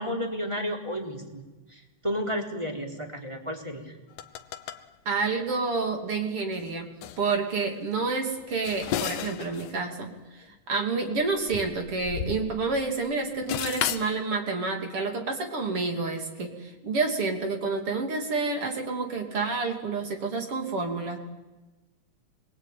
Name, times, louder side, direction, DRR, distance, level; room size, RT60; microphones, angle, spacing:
voice 1, 0.0-1.4 1.7-3.9, equal, 10° right, 2 dB, 3.7 m, -32 dB
sound 1, 4.1-4.8 5.5-5.6 6.5-6.7 7.0-7.2 8.4-9.8 10.0-10.1 11.2-12.9 13.1-14.1, left 10 dB, 75° left, 2.4 m, -33 dB
voice 2, 5.1-6.9 7.2-21.2, right 4 dB, 45° right, 4 dB, 3.7 m, -29 dB
27.5 x 21.5 x 9.3 m, 1.1 s
omnidirectional pair, 3.6 m